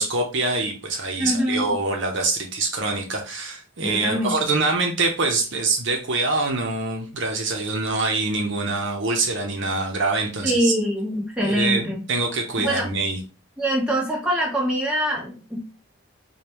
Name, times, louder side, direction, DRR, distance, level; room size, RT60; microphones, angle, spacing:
voice 1, 0.0-10.7 11.4-13.2, right 3 dB, 60° right, 2 dB, 0.7 m, -24 dB
voice 2, 1.2-1.7 3.8-4.4 10.4-12.0 12.6-12.9 13.6-15.6, equal, 5° right, -4 dB, 1.2 m, -24 dB
5.0 x 2.2 x 3.0 m, 0.35 s
head